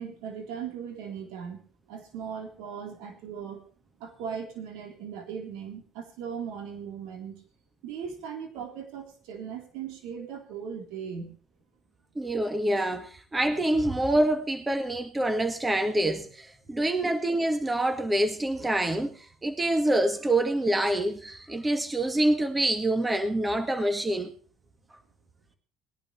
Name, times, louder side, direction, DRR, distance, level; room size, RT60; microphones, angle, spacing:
voice 1, 0.0-1.6 1.9-3.6 4.0-7.4 7.8-11.4, right 7 dB, 80° right, 2 dB, 3.6 m, -38 dB
voice 2, 12.2-24.3, right 1 dB, 20° right, 6 dB, 1.9 m, -26 dB
20.0 x 11.0 x 3.3 m, 0.41 s
hypercardioid pair, 65°, 0 cm